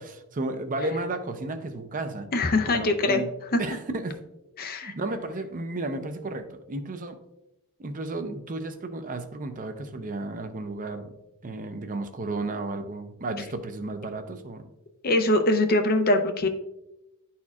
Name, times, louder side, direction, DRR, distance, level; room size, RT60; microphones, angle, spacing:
voice 1, 0.0-2.3 2.7-3.3 3.6-4.2 4.8-7.1 7.8-11.1 11.4-14.6, right 2 dB, 35° right, 7 dB, 0.5 m, -33 dB
voice 2, 2.3-3.2 3.5-3.6 4.6-4.9 15.0-16.5, left 2 dB, 45° left, 6 dB, 0.6 m, -22 dB
11.0 x 4.3 x 2.4 m, 0.89 s
head